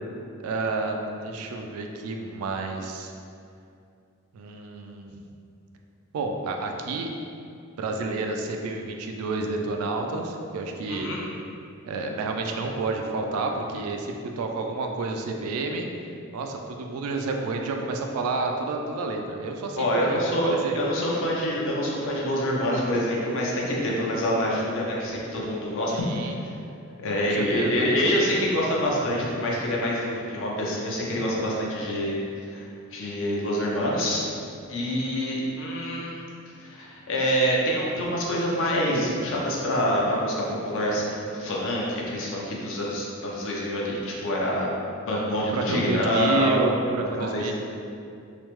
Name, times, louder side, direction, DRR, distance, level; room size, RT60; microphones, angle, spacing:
voice 1, 0.4-3.1 4.3-5.1 6.1-7.1 7.8-11.1 11.9-15.9 16.3-20.8 25.9-26.4 27.2-27.8 45.5-47.5, right 3 dB, 75° right, 2 dB, 0.3 m, -30 dB
voice 2, 10.9-11.2 19.7-26.5 27.0-34.3 34.7-36.2 36.6-44.7 45.0-46.6 47.2-47.5, equal, 60° left, -4 dB, 0.6 m, -26 dB
3.0 x 2.0 x 3.0 m, 2.5 s
head